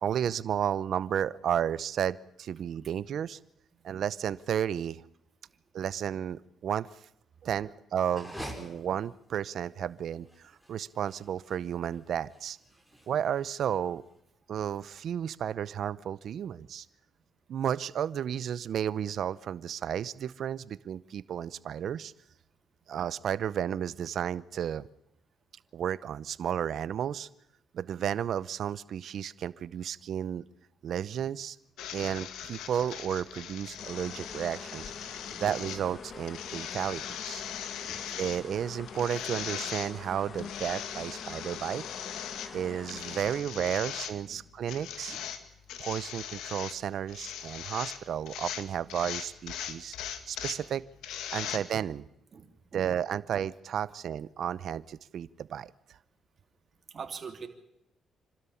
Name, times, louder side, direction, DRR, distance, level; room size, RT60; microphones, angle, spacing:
voice 1, 0.0-3.4 3.8-5.0 5.7-6.9 7.4-12.6 13.1-14.0 14.5-16.9 17.5-22.1 22.9-24.8 25.7-27.3 27.7-30.4 30.8-31.6 31.9-37.4 38.2-41.8 42.5-45.2 45.8-50.8 51.3-52.0 52.7-55.7, right 9 dB, 65° right, 17 dB, 0.7 m, -33 dB
sound 1, 8.0-14.1, equal, 5° left, 5.3 m, -47 dB
sound 2, 31.8-51.6, left 9 dB, 85° left, 1.9 m, -40 dB
sound 3, 33.8-43.4, left 6 dB, 50° left, 1.5 m, -45 dB
voice 2, 52.3-52.8 56.9-57.5, right 6 dB, 45° right, 6 dB, 3.1 m, -43 dB
26.0 x 13.0 x 9.9 m, 0.79 s
cardioid pair, 90°, 0 cm